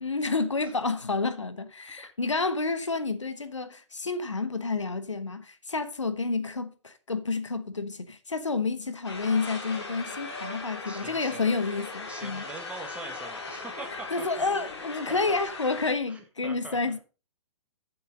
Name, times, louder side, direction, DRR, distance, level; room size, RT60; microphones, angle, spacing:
voice 1, 0.0-12.4 14.1-17.0, left 3 dB, 75° left, 1.1 m, -29 dB
sound 1, 9.0-15.9, left 3 dB, 60° left, 2.6 m, -39 dB
voice 2, 10.5-11.5 12.1-14.3 15.1-15.4 16.1-17.0, right 3 dB, 10° right, 1.6 m, -43 dB
9.1 x 7.2 x 5.2 m
figure-of-eight pair, 120°, 16 cm